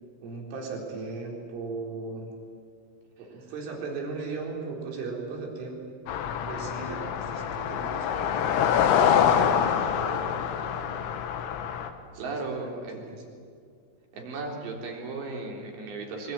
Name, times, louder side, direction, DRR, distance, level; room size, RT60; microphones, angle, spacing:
voice 1, 0.2-2.3 3.2-5.8 6.5-11.2 12.1-13.2, right 4 dB, 90° right, 0 dB, 6.6 m, -38 dB
sound 1, 6.1-11.9, left 8 dB, 75° left, 3.6 m, -25 dB
voice 2, 12.2-13.0 14.1-16.3, right 3 dB, 65° right, 0 dB, 5.7 m, -35 dB
25.0 x 23.0 x 9.5 m, 2.2 s
omnidirectional pair, 5.5 m